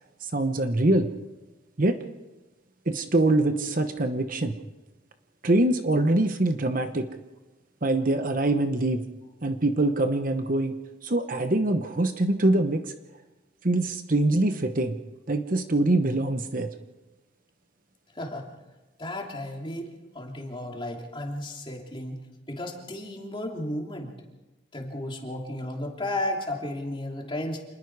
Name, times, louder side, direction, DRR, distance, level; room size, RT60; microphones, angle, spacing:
voice 1, 0.2-1.1 1.8-2.0 2.9-4.6 5.4-7.1 7.8-9.0 9.4-10.7 11.0-12.9 13.6-15.0 15.3-16.7, right 2 dB, 45° right, 8 dB, 0.9 m, -24 dB
voice 2, 18.1-18.5 19.0-19.9 20.1-22.2 22.5-24.1 24.7-27.6, left 1 dB, 25° left, 0 dB, 3.0 m, -33 dB
27.0 x 20.5 x 4.8 m, 1.1 s
head